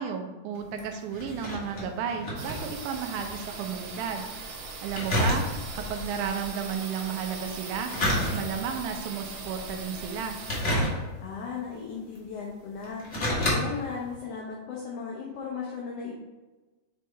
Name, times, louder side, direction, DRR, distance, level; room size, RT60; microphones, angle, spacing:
voice 1, 0.0-10.4, right 6 dB, 85° right, 4 dB, 2.2 m, -33 dB
sound 1, 0.5-3.4 3.7-3.8 4.9-5.9 7.7-8.8 9.3-9.7 10.4-11.4 12.2-12.3 12.8-13.6 14.0-14.1, left 1 dB, 40° left, 1.0 m, -29 dB
sound 2, 2.4-10.6, right 3 dB, 65° right, 1.7 m, -40 dB
voice 2, 11.2-13.0 13.5-16.1, left 5 dB, 70° left, -3 dB, 1.6 m, -36 dB
6.5 x 3.4 x 4.3 m, 1.2 s
omnidirectional pair, 3.5 m